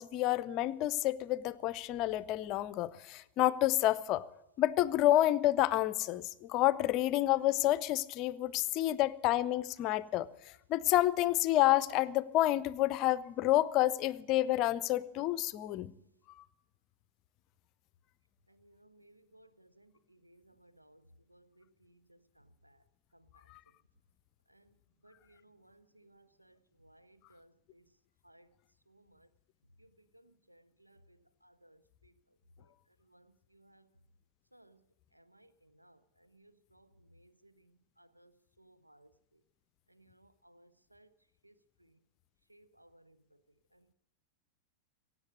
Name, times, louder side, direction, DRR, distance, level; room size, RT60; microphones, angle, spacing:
voice 1, 0.0-4.3 4.6-10.3 10.7-15.9, left 14 dB, 40° left, 0.6 m, -29 dB
voice 2, 18.5-19.9 20.2-21.0 21.3-21.6 24.5-24.6 25.0-26.5 26.8-27.8 28.2-28.5 28.9-29.2 30.1-30.2 30.5-31.0 31.4-31.8 33.1-33.3 33.5-33.8 34.5-34.8 35.2-35.5 35.8-36.0 36.3-36.9 37.2-37.5 38.0-38.3 38.6-39.1 40.0-41.1 41.4-41.5 42.5-43.1, right 1 dB, 85° right, 0.6 m, -63 dB
16.5 x 8.5 x 9.3 m
figure-of-eight pair, 90°, 0 cm